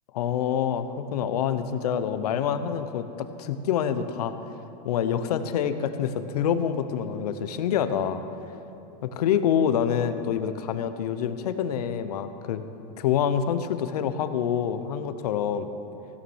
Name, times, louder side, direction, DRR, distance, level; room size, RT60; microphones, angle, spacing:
voice 1, 0.1-4.3 4.8-8.2 9.0-12.6 13.0-15.7, left 8 dB, 65° left, 10 dB, 0.8 m, -26 dB
15.5 x 7.1 x 6.3 m, 2.9 s
supercardioid pair, 170°, 21 cm